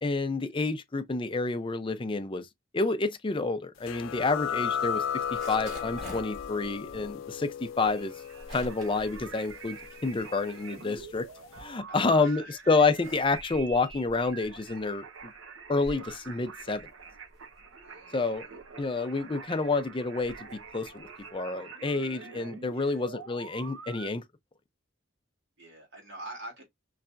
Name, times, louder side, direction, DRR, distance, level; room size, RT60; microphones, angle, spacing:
voice 1, 0.0-2.5 2.7-8.1 8.5-9.8 10.0-11.3 11.6-15.3 15.7-16.9 18.1-18.5 18.8-24.2, left 3 dB, 25° left, 0.5 m, -29 dB
sound 1, 3.9-11.1, left 8 dB, 85° left, 0.4 m, -36 dB
sound 2, 5.2-10.4 10.7-12.2 12.7-21.4, equal, 40° right, 2.9 m, -48 dB
sound 3, 7.8-24.1, right 5 dB, 85° right, 1.1 m, -46 dB
voice 2, 11.9-12.7 17.8-18.5 22.7-23.1 25.6-26.6, right 1 dB, 65° right, 2.7 m, -46 dB
5.6 x 3.2 x 2.5 m
head